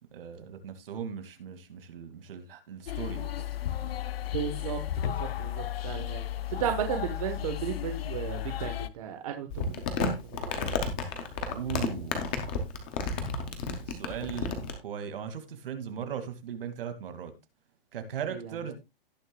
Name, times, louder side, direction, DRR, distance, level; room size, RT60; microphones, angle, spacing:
voice 1, 0.1-3.5 11.5-12.2 13.8-14.5 14.8-17.3 17.9-18.7, right 8 dB, 70° right, 2.2 m, -38 dB
sound 1, 2.9-8.9, left 12 dB, 85° left, 0.8 m, -34 dB
voice 2, 4.3-10.7 18.3-18.5, right 9 dB, 35° right, 1.2 m, -35 dB
Crumpling crinkling, 9.5-14.7, left 4 dB, 10° left, 0.4 m, -31 dB
17.0 x 6.5 x 2.3 m
hypercardioid pair, 180°, 29 cm